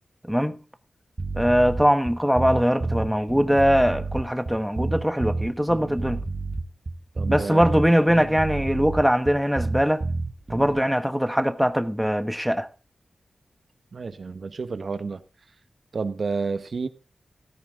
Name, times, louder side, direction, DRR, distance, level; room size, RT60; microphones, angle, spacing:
sound 1, 1.2-10.8, right 3 dB, 45° right, 1.6 m, -30 dB
voice 1, 1.4-6.2 7.3-10.0 10.5-12.7, equal, ahead, 1.1 m, -21 dB
voice 2, 7.2-7.6 13.9-15.2 15.9-16.9, right 4 dB, 65° right, 1.0 m, -30 dB
14.5 x 13.0 x 3.6 m
wide cardioid pair, 70°, 0 cm